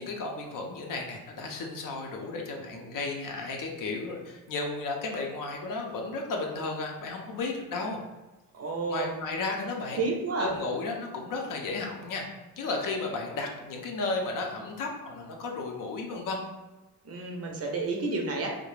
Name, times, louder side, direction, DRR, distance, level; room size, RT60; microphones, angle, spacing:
voice 1, 0.0-8.0 8.9-10.0 10.4-12.3 12.6-16.4, left 3 dB, 55° left, 1 dB, 0.6 m, -33 dB
voice 2, 8.5-9.2 10.0-10.5 17.0-18.5, right 3 dB, 40° right, 0 dB, 0.5 m, -30 dB
2.4 x 2.1 x 3.1 m, 1.1 s
cardioid pair, 110°, 38 cm